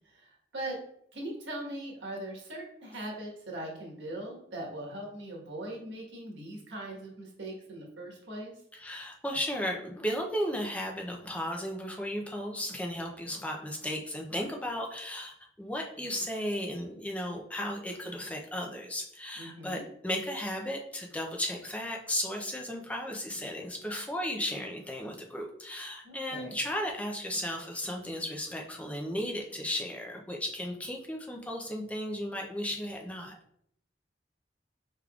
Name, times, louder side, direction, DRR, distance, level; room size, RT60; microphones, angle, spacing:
voice 1, 0.1-0.8 1.1-8.5 19.4-19.8 26.0-26.6, right 1 dB, 90° right, -2 dB, 1.4 m, -40 dB
voice 2, 8.7-33.4, equal, 10° left, 1 dB, 0.5 m, -35 dB
5.0 x 3.4 x 2.4 m, 0.70 s
head